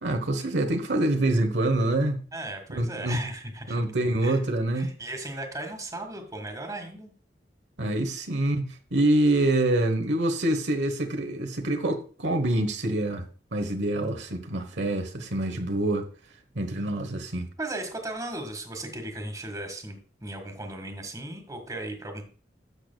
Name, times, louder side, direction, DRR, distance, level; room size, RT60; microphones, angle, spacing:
voice 1, 0.0-2.2 2.7-3.2 3.7-4.9 7.8-8.6 8.9-16.1 16.5-17.5, right 1 dB, 85° right, 1.1 m, -26 dB
voice 2, 2.3-3.8 4.2-4.4 4.7-7.1 17.6-22.2, right 2 dB, 20° right, 1.6 m, -36 dB
12.5 x 6.8 x 2.3 m
head